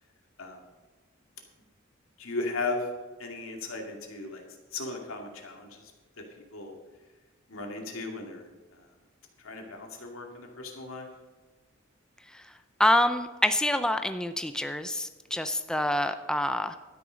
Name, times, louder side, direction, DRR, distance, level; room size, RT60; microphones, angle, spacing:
voice 1, 2.2-2.8 3.2-4.4 4.7-5.8 6.5-6.8 7.5-8.5 9.4-11.1, left 3 dB, 80° left, 2 dB, 2.3 m, -36 dB
voice 2, 12.8-16.8, left 1 dB, 5° left, 9 dB, 0.5 m, -26 dB
12.5 x 10.0 x 5.2 m, 1.3 s
head